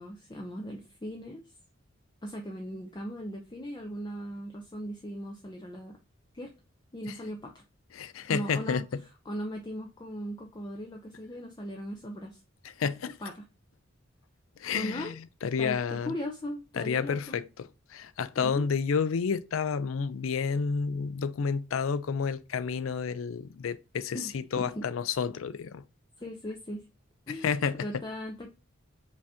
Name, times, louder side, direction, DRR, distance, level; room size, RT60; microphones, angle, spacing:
voice 1, 0.0-1.4 2.2-6.0 6.3-6.5 6.9-7.6 8.3-8.9 9.3-12.4 13.2-13.4 14.7-15.1 15.6-17.4 18.4-18.7 24.1-24.8 26.2-26.8 27.3-28.5, equal, 20° left, 0.5 m, -38 dB
voice 2, 7.9-8.8 12.8-13.2 14.6-15.1 15.4-16.1 16.8-25.8 27.3-27.9, left 6 dB, 85° left, 0.4 m, -30 dB
5.2 x 2.7 x 3.5 m
head